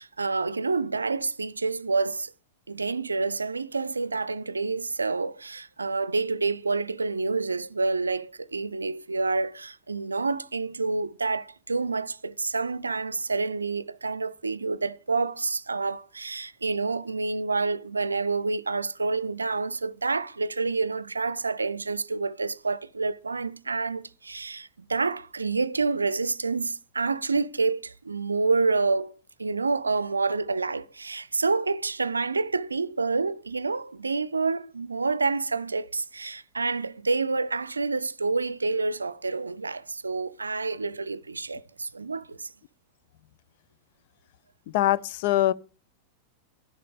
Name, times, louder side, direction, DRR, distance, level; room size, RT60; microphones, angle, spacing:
voice 1, 0.0-2.3 2.7-29.1 29.4-42.5, right 3 dB, 80° right, 0.5 m, -28 dB
voice 2, 44.7-45.5, left 14 dB, 50° left, 0.6 m, -22 dB
12.5 x 11.0 x 5.0 m
figure-of-eight pair, 90°, 0 cm